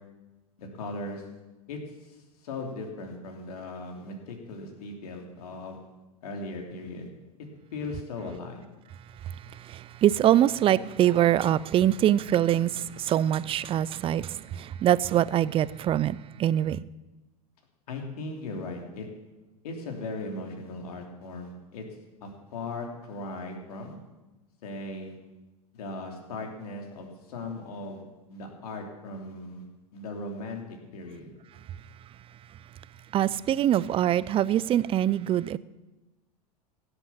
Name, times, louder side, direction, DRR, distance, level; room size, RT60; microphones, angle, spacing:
voice 1, 0.6-1.3 1.7-2.2 2.4-5.8 6.2-7.1 7.4-8.6 17.9-19.1 19.6-21.8 22.2-23.9 24.6-25.1 25.7-28.0 28.3-29.6 29.9-30.6 30.9-31.3, left 2 dB, 70° left, 3.2 m, -38 dB
voice 2, 9.2-16.9 33.1-35.6, right 11 dB, 30° right, 0.5 m, -24 dB
16.0 x 8.0 x 7.2 m
hypercardioid pair, 100°, 20 cm